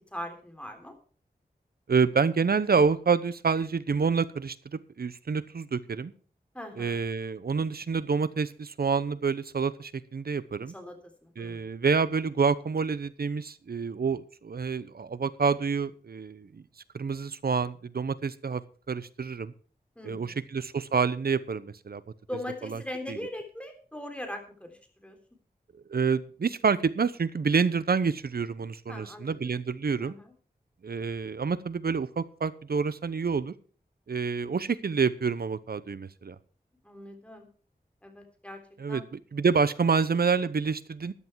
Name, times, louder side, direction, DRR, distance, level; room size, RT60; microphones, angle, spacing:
voice 1, 0.1-0.9 6.5-7.0 10.7-10.9 11.2-11.7 20.0-20.4 22.3-25.2 28.9-29.3 30.0-30.3 36.8-37.5 38.0-38.6 38.9-39.0, left 1 dB, 5° left, 4 dB, 3.6 m, -40 dB
voice 2, 1.9-6.1 6.8-10.7 11.4-16.6 16.9-18.6 18.9-19.5 20.0-22.0 22.6-22.8 23.1-23.2 25.9-30.1 30.8-33.5 34.1-36.4 38.8-41.1, right 5 dB, 70° right, 16 dB, 0.8 m, -28 dB
14.0 x 9.6 x 4.7 m, 0.42 s
wide cardioid pair, 60°, 16 cm